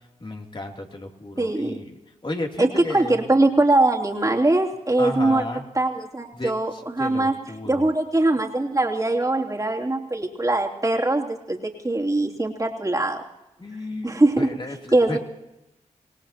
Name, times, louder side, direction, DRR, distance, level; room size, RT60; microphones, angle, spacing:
voice 1, 0.2-3.3 5.0-5.6 6.3-7.9 13.6-15.2, left 1 dB, 35° left, 2 dB, 3.0 m, -33 dB
voice 2, 1.4-1.8 2.6-5.4 5.7-7.4 7.7-13.2 14.0-14.5 14.9-15.2, right 2 dB, 25° right, 0 dB, 3.2 m, -22 dB
26.5 x 18.0 x 2.9 m, 0.92 s
cardioid pair, 50°, 14 cm